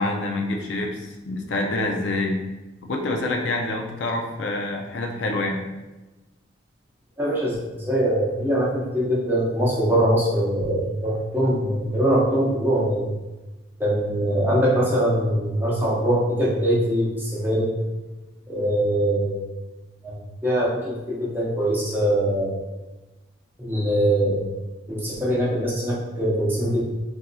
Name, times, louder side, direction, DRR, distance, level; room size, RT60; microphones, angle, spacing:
voice 1, 0.0-2.4 2.8-5.6, left 2 dB, 65° left, 2 dB, 0.4 m, -26 dB
voice 2, 7.2-13.0 13.8-17.7 18.5-19.3 20.0-22.6 23.6-24.4 24.9-26.8, right 1 dB, 10° right, -6 dB, 0.6 m, -22 dB
3.9 x 2.6 x 2.2 m, 1.1 s
head